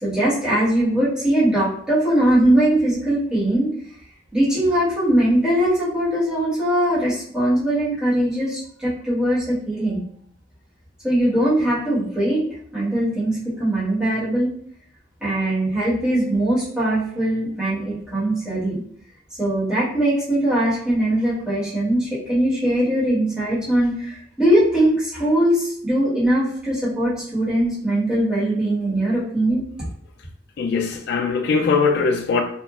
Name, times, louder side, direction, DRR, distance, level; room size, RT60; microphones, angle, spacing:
voice 1, 0.0-3.7 4.3-10.0 11.0-12.4 12.7-14.5 15.2-18.8 19.4-29.6, right 1 dB, 5° right, -11 dB, 1.3 m, -21 dB
voice 2, 30.6-32.4, left 4 dB, 65° left, 5 dB, 0.3 m, -20 dB
2.9 x 2.4 x 2.3 m, 0.62 s
head